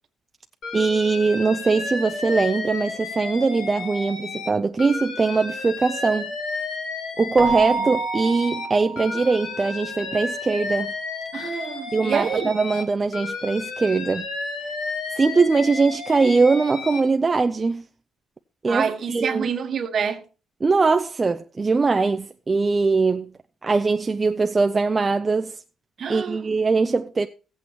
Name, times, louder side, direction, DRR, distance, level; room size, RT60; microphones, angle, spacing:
Alarm, 0.6-4.5 4.8-8.7 9.0-12.8 13.1-17.0, left 3 dB, 70° left, 2.3 m, -32 dB
voice 1, 0.7-6.3 7.2-10.9 11.9-14.3 15.2-17.8 18.6-19.5 20.6-23.3 23.6-25.6 26.1-27.3, right 4 dB, 25° right, 0.5 m, -21 dB
Keyboard (musical), 7.4-9.8, right 4 dB, ahead, 1.4 m, -28 dB
voice 2, 11.3-12.5 18.7-20.2 26.0-26.4, right 6 dB, 50° right, 1.3 m, -27 dB
15.5 x 8.3 x 3.0 m
cardioid pair, 110°, 0 cm